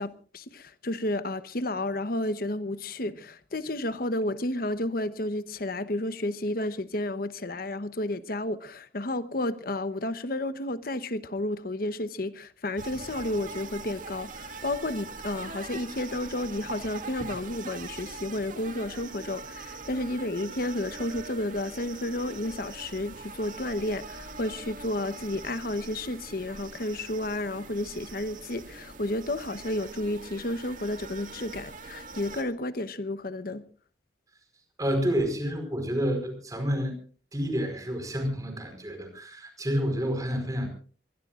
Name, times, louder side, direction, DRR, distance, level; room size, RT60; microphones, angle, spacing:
voice 1, 0.0-33.6, left 1 dB, 55° left, 1.0 m, -32 dB
sound 1, 12.8-32.4, right 3 dB, 45° right, 2.1 m, -42 dB
voice 2, 34.8-36.9 37.3-40.7, equal, 20° right, 4.8 m, -29 dB
24.0 x 21.0 x 2.5 m
head